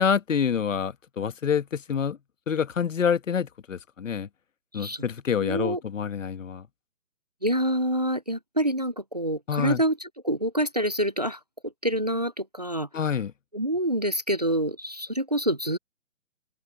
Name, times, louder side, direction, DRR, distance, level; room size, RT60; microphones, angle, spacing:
voice 1, 0.0-2.2 2.5-4.3 4.7-6.7 9.5-9.8 12.9-13.3, left 7 dB, 70° left, 1.3 m, -27 dB
voice 2, 5.4-5.8 7.4-12.9 13.5-15.8, right 1 dB, 35° right, 0.4 m, -27 dB
open air
hypercardioid pair, 170°, 39 cm